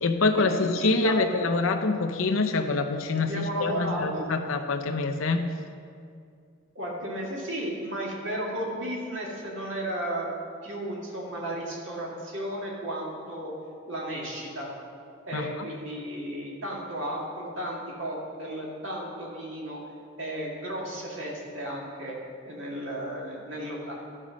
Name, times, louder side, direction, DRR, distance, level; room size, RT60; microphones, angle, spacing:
voice 1, 0.0-5.4 15.3-15.6, left 3 dB, 75° left, 5 dB, 0.7 m, -25 dB
voice 2, 0.6-1.5 3.2-4.3 6.7-10.3 10.6-13.5 13.9-14.7 15.3-19.8 20.2-22.2 22.4-23.9, right 1 dB, 65° right, -3 dB, 2.2 m, -34 dB
12.0 x 5.4 x 6.2 m, 2.3 s
head